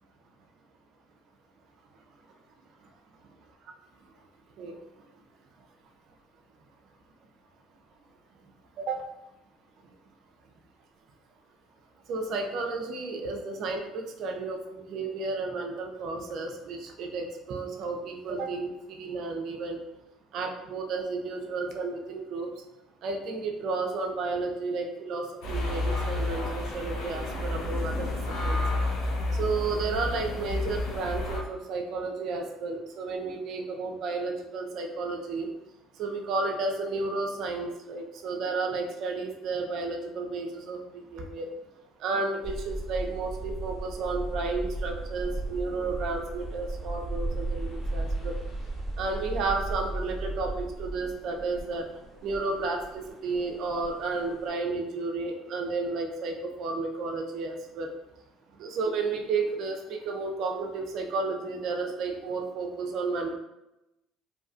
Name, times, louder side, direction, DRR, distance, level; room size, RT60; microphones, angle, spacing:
voice 1, 12.1-19.8 20.3-22.5 23.0-28.1 28.4-28.6 29.3-35.5 36.0-40.8 41.1-41.5 42.0-48.4 49.0-51.8 52.2-57.9 58.6-63.3, right 3 dB, 60° right, 3 dB, 0.4 m, -32 dB
sound 1, 25.4-31.4, left 2 dB, 70° left, 0.7 m, -30 dB
sound 2, 42.4-54.5, right 2 dB, 25° left, 0.9 m, -35 dB
2.7 x 2.2 x 2.5 m, 0.93 s
hypercardioid pair, 65°, 0 cm